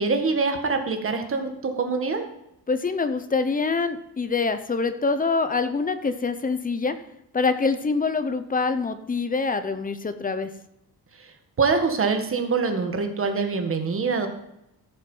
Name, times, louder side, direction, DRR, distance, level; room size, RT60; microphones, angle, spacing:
voice 1, 0.0-2.2 11.1-11.3 11.6-14.3, right 4 dB, 35° right, 5 dB, 1.6 m, -24 dB
voice 2, 2.7-7.0 7.3-10.5, left 4 dB, 20° left, 10 dB, 0.7 m, -25 dB
15.0 x 6.4 x 5.5 m, 0.83 s
cardioid pair, 155°, 39 cm